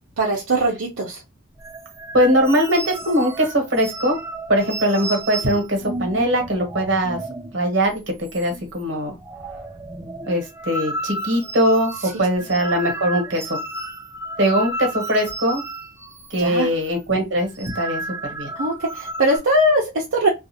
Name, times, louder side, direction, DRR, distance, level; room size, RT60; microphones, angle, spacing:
voice 1, 0.2-1.2 16.4-16.7 18.6-20.3, right 1 dB, 80° right, -2 dB, 0.6 m, -20 dB
sound 1, 1.6-7.6 7.8-8.0 8.3-8.8 9.1-16.4 16.7-16.9 17.4-19.4, right 1 dB, 15° right, 0.3 m, -32 dB
voice 2, 2.1-4.2 4.5-7.2 7.5-8.0 8.3-9.2 10.3-11.9 12.2-13.6 14.4-15.6 16.3-18.0 18.3-18.5, equal, 65° right, 2 dB, 1.1 m, -21 dB
2.4 x 2.4 x 2.8 m, 0.23 s
head